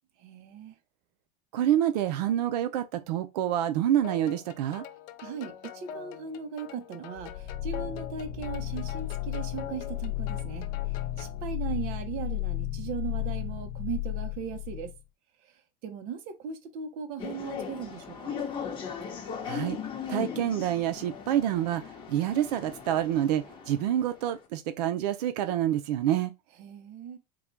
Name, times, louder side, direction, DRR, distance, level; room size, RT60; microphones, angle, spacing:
voice 1, 0.2-0.8 5.2-14.9 15.4-18.4 26.6-27.2, right 7 dB, 45° right, 0.8 m, -38 dB
voice 2, 1.5-4.8 19.4-19.8 20.1-26.3, right 11 dB, 90° right, 0.5 m, -27 dB
sound 1, 4.0-11.4, left 9 dB, 45° left, 0.5 m, -44 dB
sound 2, 7.2-15.0, left 15 dB, 80° left, 0.7 m, -34 dB
sound 3, 17.2-24.3, left 7 dB, 25° left, 0.9 m, -38 dB
3.8 x 2.2 x 4.4 m
supercardioid pair, 165°, 20 cm